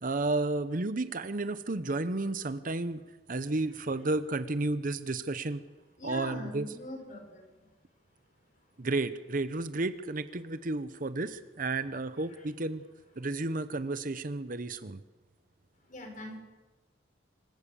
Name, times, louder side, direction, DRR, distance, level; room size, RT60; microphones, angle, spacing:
voice 1, 0.0-3.0 3.3-5.6 6.0-6.7 8.8-12.8 13.2-15.0, right 2 dB, 45° right, 13 dB, 0.8 m, -32 dB
voice 2, 6.0-7.5 15.9-16.4, left 1 dB, 40° left, 4 dB, 4.5 m, -42 dB
26.0 x 15.5 x 7.0 m, 1.2 s
head